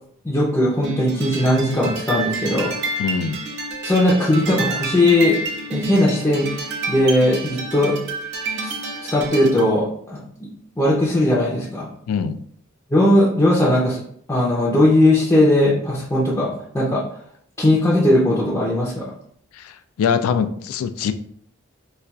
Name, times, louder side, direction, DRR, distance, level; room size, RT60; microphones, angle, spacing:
voice 1, 0.2-2.7 3.8-5.4 5.7-6.5 6.9-8.0 8.6-10.2 10.8-11.9 12.9-14.0 14.3-16.5 16.7-17.0 17.6-19.1, left 1 dB, 15° left, -5 dB, 0.5 m, -18 dB
sound 1, 0.8-9.7, right 3 dB, 55° right, 0.5 m, -29 dB
voice 2, 3.0-3.4 12.1-12.4 20.0-21.1, left 6 dB, 85° left, 11 dB, 0.3 m, -22 dB
4.1 x 2.4 x 2.3 m, 0.65 s
head